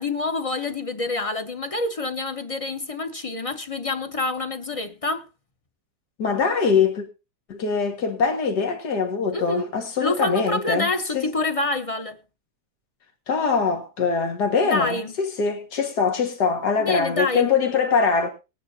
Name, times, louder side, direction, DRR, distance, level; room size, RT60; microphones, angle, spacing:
voice 1, 0.0-5.3 9.3-9.7 10.0-12.2 14.6-15.1 16.8-17.5, left 2 dB, 30° left, 0.6 m, -27 dB
voice 2, 6.2-7.1 7.5-11.3 13.3-18.3, left 5 dB, 80° left, 2.2 m, -23 dB
20.5 x 9.3 x 2.7 m
omnidirectional pair, 1.8 m